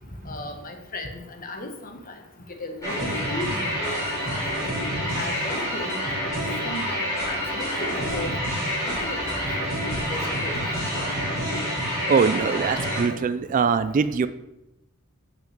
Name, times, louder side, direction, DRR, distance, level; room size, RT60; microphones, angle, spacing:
voice 1, 0.2-2.1 2.6-4.4 5.0-6.0 6.3-7.0 7.3-9.4 10.1-10.6, left 1 dB, 40° left, 4 dB, 1.2 m, -36 dB
sound 1, 2.8-13.1, equal, 15° left, 3.6 m, -27 dB
voice 2, 12.1-14.3, right 5 dB, 40° right, 13 dB, 0.3 m, -22 dB
5.9 x 5.7 x 7.0 m, 0.95 s
head